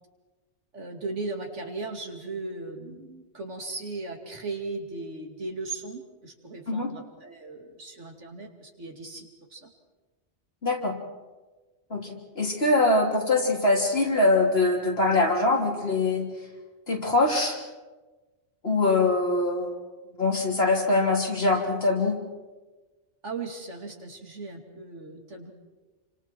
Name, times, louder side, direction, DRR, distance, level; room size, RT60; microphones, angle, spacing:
voice 1, 0.7-9.7 23.2-25.5, right 3 dB, 80° right, 2 dB, 2.9 m, -37 dB
voice 2, 10.6-11.0 11.9-16.3 16.9-17.6 18.6-19.7 20.2-22.2, left 2 dB, 55° left, -1 dB, 3.6 m, -23 dB
28.5 x 25.5 x 4.6 m, 1.2 s
omnidirectional pair, 1.2 m